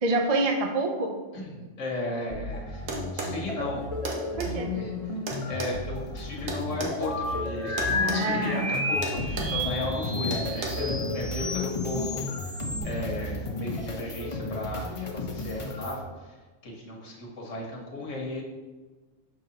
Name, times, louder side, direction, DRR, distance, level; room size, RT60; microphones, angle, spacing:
voice 1, 0.0-1.2 4.4-4.8 7.9-8.7, right 2 dB, 45° right, 3 dB, 0.5 m, -27 dB
voice 2, 1.3-3.8 4.7-4.9 5.2-16.4 16.6-18.4, left 2 dB, 75° left, -1 dB, 1.5 m, -35 dB
sound 1, 2.3-16.0, left 2 dB, 35° left, 0.5 m, -34 dB
sound 2, 2.9-3.4 4.0-4.5 5.3-7.0 7.8-8.2 8.5-8.7 9.0-9.6 10.3-10.7, right 2 dB, 85° right, 1.4 m, -33 dB
sound 3, 7.0-12.8, left 2 dB, 20° right, 1.3 m, -32 dB
6.5 x 5.4 x 2.8 m, 1.3 s
omnidirectional pair, 1.3 m